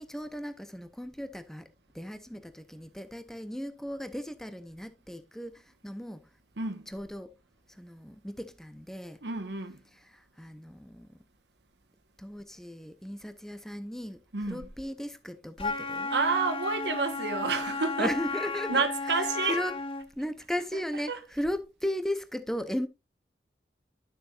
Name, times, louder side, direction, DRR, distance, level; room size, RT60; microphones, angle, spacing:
voice 1, 0.0-6.3 6.9-7.3 7.7-9.2 9.9-11.2 12.2-16.1 18.0-18.9 19.4-19.7 20.1-22.9, equal, 5° left, 0.6 m, -36 dB
voice 2, 6.6-6.9 9.2-9.8 14.3-14.7 16.1-18.1 18.7-19.6 21.1-21.2, right 4 dB, 80° right, 1.2 m, -29 dB
Wind instrument woodwind instrument, 15.6-20.1, left 3 dB, 30° left, 0.9 m, -34 dB
12.0 x 6.7 x 2.4 m
head